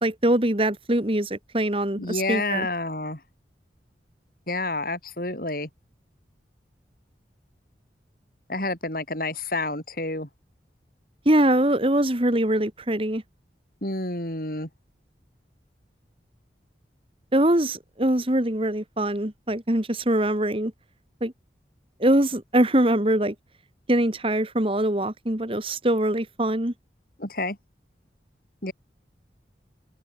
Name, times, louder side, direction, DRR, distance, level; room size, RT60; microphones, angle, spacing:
voice 1, 0.0-2.7 11.3-13.2 17.3-20.7 21.2-21.3 22.0-23.3 23.9-26.7, right 1 dB, 30° right, 2.1 m, -23 dB
voice 2, 2.0-3.2 4.5-5.7 8.5-10.3 13.8-14.7 27.2-27.6 28.6-28.7, left 2 dB, 55° left, 7.0 m, -29 dB
head